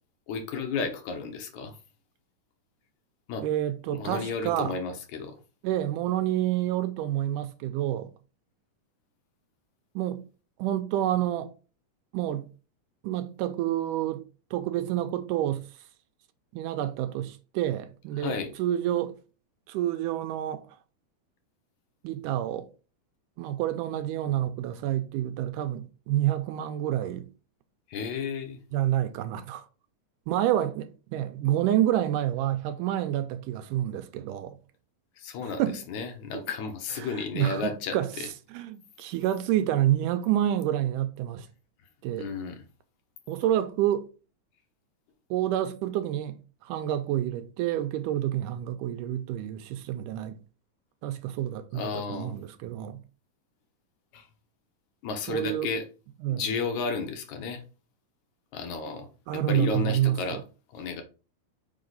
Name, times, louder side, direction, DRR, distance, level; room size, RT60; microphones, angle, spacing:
voice 1, 0.3-1.8 3.3-3.5 3.9-5.4 18.2-18.5 27.9-28.6 35.2-35.6 35.9-38.3 42.1-42.6 51.7-52.3 54.1-54.3 55.0-55.8 56.3-57.6 58.5-59.1 59.5-60.4 60.7-61.0, left 5 dB, 70° left, 2.1 m, -32 dB
voice 2, 3.4-4.8 5.6-8.1 10.0-10.2 10.6-11.5 12.1-12.5 13.0-14.3 14.5-15.7 16.5-19.2 19.7-20.6 22.0-22.7 23.4-27.3 28.7-29.7 30.3-34.6 35.6-35.8 37.0-38.1 38.5-41.5 42.0-42.3 43.3-44.1 45.3-50.4 51.0-53.0 55.3-55.7 56.2-56.4 59.3-60.4, right 12 dB, 80° right, 2.1 m, -28 dB
5.3 x 4.8 x 3.9 m
omnidirectional pair, 3.8 m